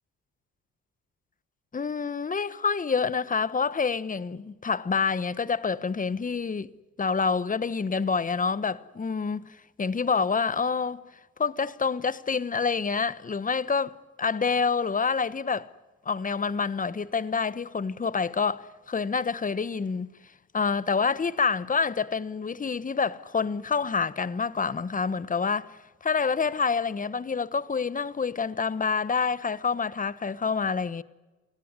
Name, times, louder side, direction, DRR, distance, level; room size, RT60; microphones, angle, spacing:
voice 1, 1.7-6.7 7.0-11.0 11.4-15.7 16.0-20.1 20.5-31.0, left 5 dB, 25° left, 1.1 m, -27 dB
28.0 x 18.0 x 9.7 m
cardioid pair, 90°, 30 cm